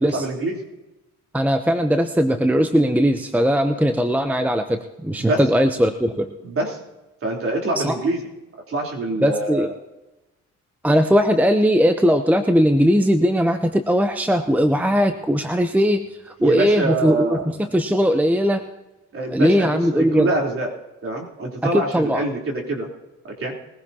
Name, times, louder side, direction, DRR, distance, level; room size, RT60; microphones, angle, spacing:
voice 1, 0.1-0.6 3.9-4.0 5.1-5.4 6.4-6.8 7.2-8.2 8.7-9.7 16.4-17.5 19.1-20.7 21.0-22.9 23.4-23.5, right 2 dB, 45° right, -1 dB, 3.6 m, -25 dB
voice 2, 1.3-6.3 7.8-8.0 9.2-9.7 10.8-18.6 19.3-20.3 21.7-22.2, equal, 5° right, 8 dB, 0.8 m, -19 dB
21.0 x 15.5 x 2.9 m, 1.0 s
cardioid pair, 90°, 30 cm